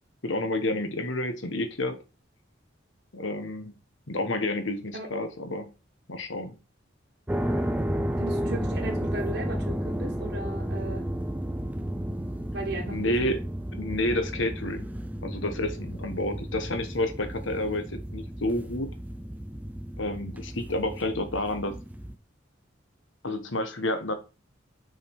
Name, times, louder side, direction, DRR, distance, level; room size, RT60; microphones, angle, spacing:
voice 1, 0.2-2.0 3.1-3.7 4.1-5.7 6.1-6.6 12.9-13.4 13.7-14.9 15.2-18.9 20.0-21.8 23.2-24.1, left 1 dB, 75° left, 1.3 m, -30 dB
sound 1, 7.3-22.1, equal, 10° right, 0.5 m, -33 dB
voice 2, 8.2-11.1 12.5-13.3, right 2 dB, 55° right, 1.2 m, -36 dB
6.5 x 5.2 x 4.5 m
head